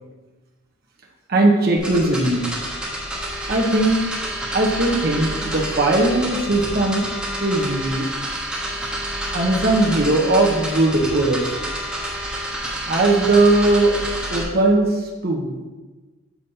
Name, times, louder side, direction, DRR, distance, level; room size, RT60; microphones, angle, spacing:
voice 1, 1.3-2.5 3.5-4.0 4.5-7.0 7.4-8.1 9.3-11.5 12.9-13.9 14.3-15.7, right 2 dB, 45° right, -2 dB, 1.0 m, -19 dB
sound 1, 1.8-14.4, right 1 dB, 5° right, 1.3 m, -28 dB
7.3 x 5.1 x 4.2 m, 1.2 s
head